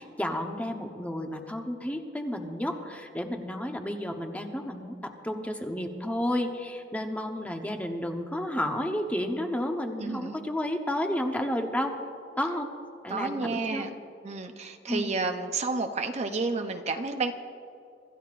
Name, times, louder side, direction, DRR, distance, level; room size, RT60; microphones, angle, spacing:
voice 1, 0.0-11.9 12.4-12.7 13.0-13.9 14.9-15.2, left 1 dB, 10° left, 3 dB, 1.0 m, -31 dB
voice 2, 10.0-10.5 13.1-13.9 14.2-17.3, right 3 dB, 40° right, 6 dB, 0.7 m, -31 dB
25.5 x 14.0 x 2.5 m, 2.4 s
head